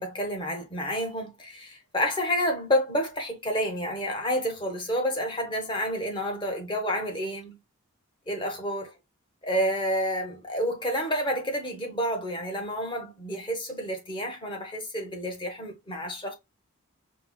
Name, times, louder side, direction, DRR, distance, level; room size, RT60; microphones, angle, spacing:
voice 1, 0.0-7.6 8.3-8.9 9.4-16.4, equal, 20° left, 0.8 m, -29 dB
4.5 x 2.0 x 2.2 m
head